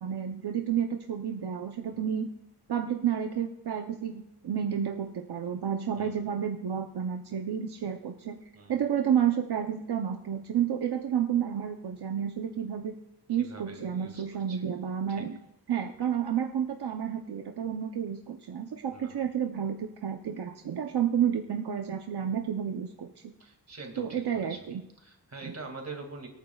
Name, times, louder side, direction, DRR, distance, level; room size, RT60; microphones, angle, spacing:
voice 1, 0.0-2.3 2.7-8.4 8.7-12.9 13.3-15.4 15.7-23.3 24.0-24.8 25.4-25.5, right 8 dB, 75° right, 4 dB, 0.8 m, -30 dB
voice 2, 13.4-14.2 14.5-14.6 15.1-15.3 18.9-19.1 23.4-24.6 25.0-26.3, right 3 dB, 40° right, 4 dB, 2.3 m, -44 dB
25.0 x 9.4 x 2.4 m, 0.94 s
wide cardioid pair, 130°, 40 cm